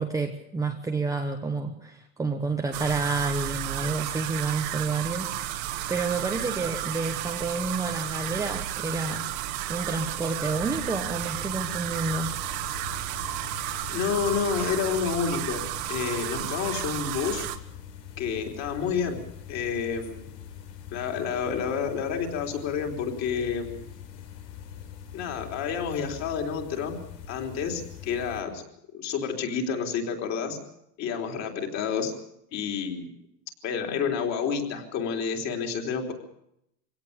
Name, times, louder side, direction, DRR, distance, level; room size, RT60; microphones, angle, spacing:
voice 1, 0.0-9.2 9.7-12.3, right 3 dB, 5° right, 2 dB, 1.0 m, -29 dB
sound 1, 2.7-17.6, right 13 dB, 45° right, 1.6 m, -33 dB
sound 2, 10.6-28.4, left 9 dB, 80° left, 4.3 m, -43 dB
voice 2, 13.9-17.5 18.2-19.2 19.5-20.3 20.9-23.8 25.1-27.0 27.3-28.6 28.9-30.6 31.0-32.1 32.5-33.1 33.6-36.1, left 6 dB, 35° left, 3 dB, 3.6 m, -29 dB
23.0 x 17.5 x 6.8 m, 0.76 s
supercardioid pair, 160°, 48 cm